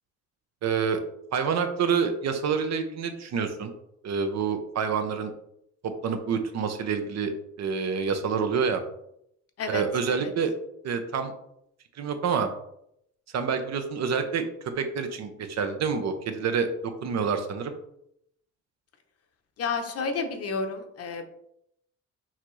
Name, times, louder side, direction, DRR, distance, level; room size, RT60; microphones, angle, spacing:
voice 1, 0.6-1.0 1.3-3.7 4.0-5.3 6.0-7.3 7.6-8.8 9.7-10.5 10.8-11.3 12.0-12.5 13.3-16.7 17.0-17.7, right 6 dB, 60° right, 8 dB, 0.7 m, -27 dB
voice 2, 19.6-21.3, left 4 dB, 50° left, 6 dB, 0.8 m, -31 dB
5.7 x 2.9 x 3.1 m, 0.75 s
cardioid pair, 90°, 30 cm